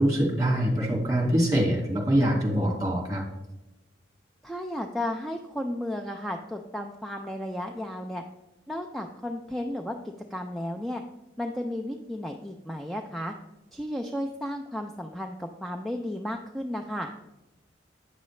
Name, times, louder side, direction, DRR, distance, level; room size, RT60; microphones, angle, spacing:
voice 1, 0.0-3.2, right 1 dB, 20° right, -1 dB, 1.9 m, -24 dB
voice 2, 4.4-8.2 8.7-10.0 10.3-11.0 11.4-13.3 13.7-17.1, left 1 dB, ahead, 3 dB, 0.4 m, -33 dB
8.7 x 6.7 x 3.1 m, 0.95 s
head